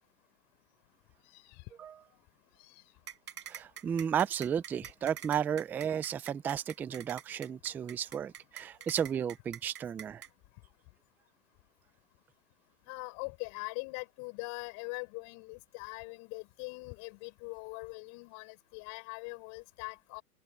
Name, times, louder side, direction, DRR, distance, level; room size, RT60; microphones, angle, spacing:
voice 1, 1.3-1.6 2.7-2.8 12.9-20.2, left 32 dB, 40° left, 6.8 m, -42 dB
sound 1, 3.1-10.3, right 9 dB, 75° right, 5.7 m, -45 dB
voice 2, 3.5-10.2, right 8 dB, 5° right, 0.4 m, -33 dB
open air
hypercardioid pair, 125°, 46 cm